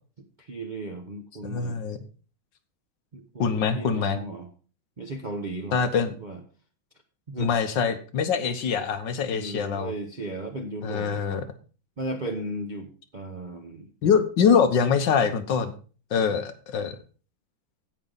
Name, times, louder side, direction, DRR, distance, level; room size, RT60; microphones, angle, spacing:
voice 1, 0.4-1.8 3.1-4.5 5.0-5.8 6.2-6.4 7.3-7.5 9.2-11.4 12.0-13.9 16.2-16.3, right 2 dB, 40° right, 3 dB, 0.6 m, -35 dB
voice 2, 1.4-2.0 3.4-4.2 5.7-6.1 7.4-9.9 10.8-11.4 14.0-15.7 16.1-17.0, left 6 dB, 70° left, 8 dB, 1.6 m, -24 dB
16.5 x 5.4 x 3.9 m, 0.39 s
omnidirectional pair, 2.2 m